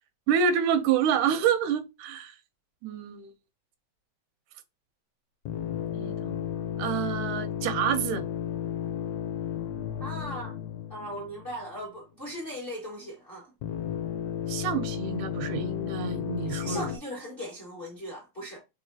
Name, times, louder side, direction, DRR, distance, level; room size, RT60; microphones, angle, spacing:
voice 1, 0.3-2.3 2.8-3.3 6.0-6.4 6.8-8.2 14.5-16.8, right 7 dB, 85° right, 2.1 m, -28 dB
sound 1, 5.5-11.8 13.6-17.0, left 10 dB, 75° left, 1.7 m, -33 dB
voice 2, 10.0-10.5 10.9-13.5 16.4-18.6, equal, 35° left, 0.9 m, -38 dB
4.8 x 3.3 x 2.7 m
omnidirectional pair, 3.5 m